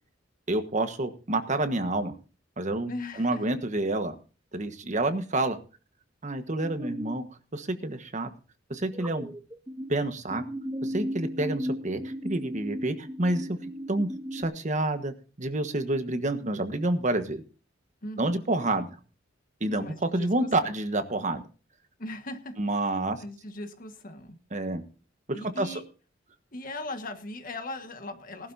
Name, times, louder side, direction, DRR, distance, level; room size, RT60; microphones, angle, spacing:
voice 1, 0.5-2.1 2.6-2.9 3.2-4.1 4.5-5.6 6.2-7.2 7.5-8.3 8.7-9.3 9.9-10.4 10.8-13.6 13.9-17.4 18.2-18.9 19.6-19.8 20.1-21.4 22.6-23.2 24.5-24.8 25.4-25.7, right 2 dB, 40° right, 8 dB, 1.4 m, -28 dB
voice 2, 2.9-3.5 18.0-18.5 19.8-20.7 22.0-24.4 25.3-25.8 26.5-28.5, left 2 dB, 45° left, 7 dB, 1.7 m, -39 dB
sound 1, 6.6-7.2 8.9-9.9 10.3-14.4, equal, 15° right, 0.9 m, -35 dB
19.0 x 12.0 x 2.7 m, 0.35 s
head